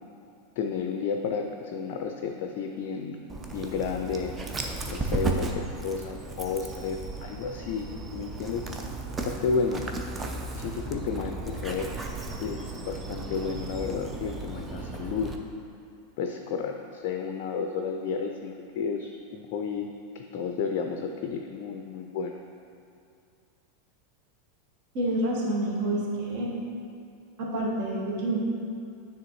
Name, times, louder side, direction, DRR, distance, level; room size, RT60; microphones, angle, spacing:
voice 1, 0.6-3.2 3.5-4.3 4.9-7.9 8.1-8.6 9.2-9.9 10.5-11.9 12.4-15.3 16.2-19.9 20.1-22.4, left 5 dB, 50° left, 4 dB, 0.4 m, -32 dB
Dog, 3.3-15.4, right 3 dB, 20° right, 0.5 m, -35 dB
voice 2, 24.9-26.6 27.4-28.4, right 1 dB, 50° right, -3 dB, 1.2 m, -28 dB
9.3 x 3.4 x 3.0 m, 2.5 s
figure-of-eight pair, 90°, 0 cm